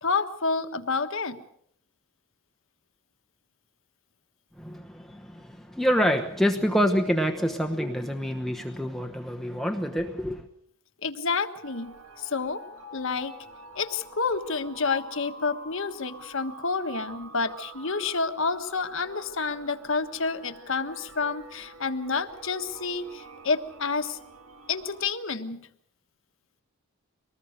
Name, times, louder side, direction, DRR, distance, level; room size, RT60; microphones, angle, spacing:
voice 1, 0.0-1.4 11.0-12.6 12.9-13.3 13.7-24.2 24.7-25.7, left 4 dB, 60° left, 1.5 m, -29 dB
voice 2, 4.6-10.4, equal, ahead, 1.0 m, -27 dB
sound 1, 11.6-25.1, right 2 dB, 70° right, 2.4 m, -47 dB
24.0 x 19.5 x 6.6 m
head